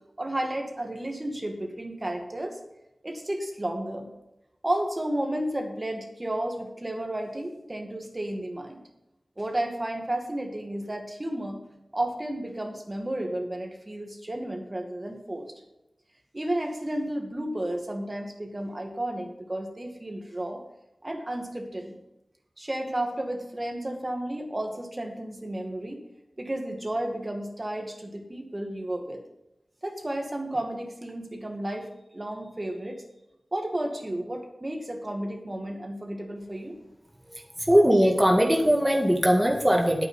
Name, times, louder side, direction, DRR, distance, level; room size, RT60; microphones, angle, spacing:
voice 1, 0.2-2.6 3.0-4.1 4.6-8.8 9.4-11.6 11.9-15.5 16.3-20.6 21.0-22.0 22.6-26.0 26.4-29.2 29.8-33.0 33.5-36.8, right 1 dB, 35° right, 3 dB, 2.2 m, -32 dB
voice 2, 37.7-40.0, equal, 5° right, 1 dB, 1.8 m, -20 dB
9.1 x 8.8 x 5.7 m, 0.92 s
cardioid pair, 40°, 0 cm